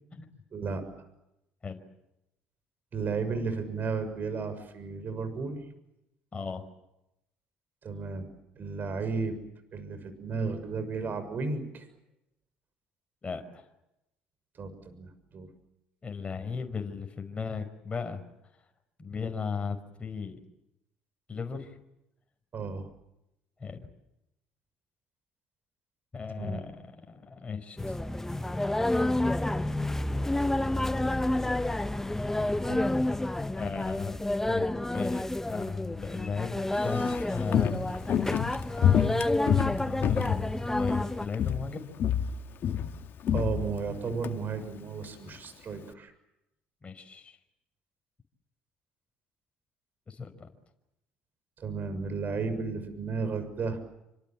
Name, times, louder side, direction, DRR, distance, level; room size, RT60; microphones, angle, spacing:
voice 1, 0.5-0.8 2.9-5.6 7.8-9.4 9.7-11.9 14.6-15.5 22.5-22.9 26.4-26.6 32.6-32.9 43.3-46.1 51.6-53.8, right 4 dB, 45° right, 11 dB, 6.6 m, -33 dB
voice 2, 6.3-6.7 13.2-13.7 16.0-18.2 19.0-20.4 21.3-21.8 23.6-23.9 26.1-28.0 33.5-34.2 34.5-37.8 39.6-41.9 46.8-47.4 50.1-50.5, left 5 dB, 30° left, 5 dB, 5.3 m, -36 dB
sound 1, 27.8-41.3, left 1 dB, 10° left, 1.1 m, -29 dB
Walk footsteps, 36.7-41.1 41.3-41.7 42.0-44.3 44.6-44.7, left 9 dB, 55° left, 2.0 m, -28 dB
28.5 x 26.0 x 7.6 m, 0.86 s
hypercardioid pair, 65°, 4 cm